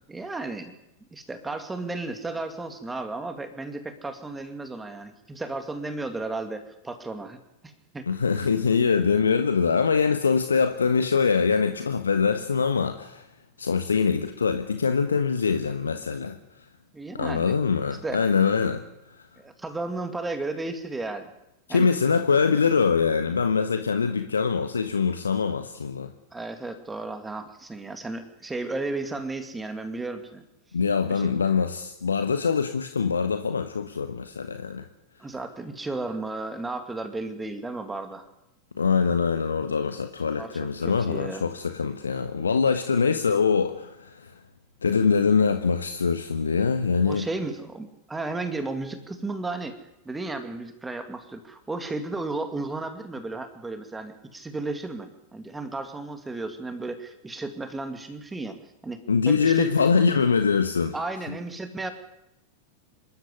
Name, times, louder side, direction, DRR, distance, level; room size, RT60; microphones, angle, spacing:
voice 1, 0.1-0.7 1.1-7.4 7.6-8.1 16.9-17.6 18.0-18.2 19.4-21.3 21.7-21.9 22.2-22.3 26.3-30.4 31.1-31.3 35.2-38.3 40.4-41.4 47.0-49.7 50.1-59.7 60.9-61.9, right 2 dB, 10° right, 8 dB, 2.2 m, -34 dB
voice 2, 8.1-13.2 13.6-16.4 17.1-18.8 21.7-26.1 30.7-34.9 38.8-44.3 44.8-47.2 59.1-60.9, left 5 dB, 75° left, 8 dB, 1.3 m, -23 dB
26.0 x 13.5 x 9.9 m, 0.88 s
figure-of-eight pair, 90°, 0 cm